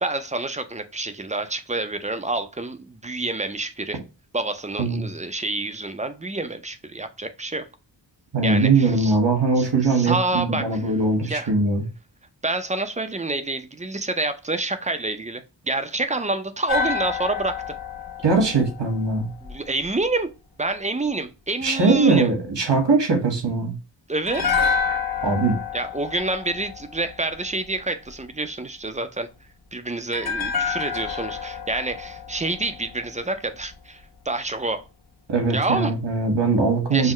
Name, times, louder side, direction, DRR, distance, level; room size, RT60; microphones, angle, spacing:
voice 1, 0.0-4.0 4.3-7.7 8.4-9.2 9.6-10.9 11.2-11.5 12.4-17.6 19.4-20.3 20.6-22.3 24.1-24.6 25.7-29.3 29.7-34.0 34.3-34.8 35.5-35.9 36.9-37.1, right 2 dB, 15° right, 0.5 m, -28 dB
voice 2, 8.3-11.8 18.2-19.3 21.6-23.7 25.2-25.6 35.3-37.1, right 3 dB, 75° right, 1.7 m, -21 dB
sound 1, 16.7-19.9 24.3-27.5 30.1-33.3 33.6-33.7, left 6 dB, 55° left, 1.2 m, -28 dB
5.6 x 2.1 x 3.1 m
wide cardioid pair, 90°, 43 cm